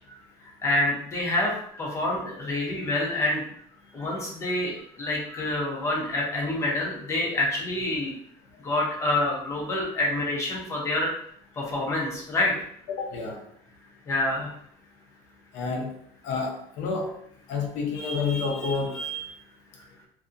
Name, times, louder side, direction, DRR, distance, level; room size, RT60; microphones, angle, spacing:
voice 1, 0.6-3.4 3.9-8.1 8.6-11.1 11.6-12.5 14.1-14.5, left 2 dB, 25° left, -2 dB, 0.6 m, -27 dB
voice 2, 12.9-13.4 15.5-15.9 16.2-17.1 17.5-19.3, left 4 dB, 75° left, 1 dB, 0.7 m, -29 dB
2.7 x 2.5 x 2.4 m, 0.68 s
cardioid pair, 175°, 13 cm